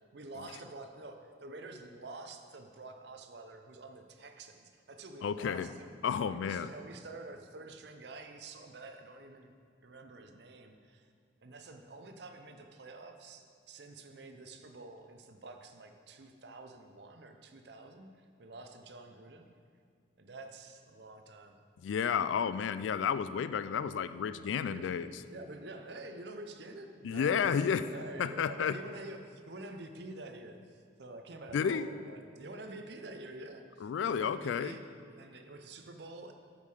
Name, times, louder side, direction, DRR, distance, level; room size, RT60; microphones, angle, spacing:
voice 1, 0.1-6.0 6.3-9.6 9.8-11.1 11.4-19.5 20.2-21.6 22.7-23.1 24.3-25.0 25.3-27.6 27.9-36.4, right 2 dB, 65° right, 6 dB, 0.6 m, -48 dB
voice 2, 5.2-5.7 6.0-6.7 21.8-25.1 27.0-27.8 28.2-28.8 31.5-31.9 33.8-34.8, left 7 dB, 85° left, 13 dB, 0.3 m, -31 dB
8.5 x 5.5 x 4.9 m, 2.2 s
head